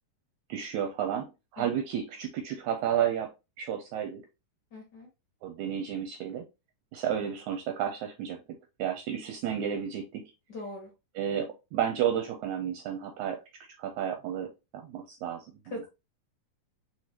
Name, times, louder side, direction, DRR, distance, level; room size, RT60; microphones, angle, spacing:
voice 1, 0.5-3.3 3.6-4.2 5.4-6.4 6.9-8.4 8.8-10.3 11.2-13.4 13.8-15.5, right 9 dB, 75° right, 4 dB, 1.8 m, -32 dB
voice 2, 4.7-5.1 10.5-10.9 15.7-15.9, left 1 dB, 50° left, -2 dB, 1.4 m, -40 dB
4.8 x 3.9 x 2.8 m, 0.26 s
omnidirectional pair, 3.9 m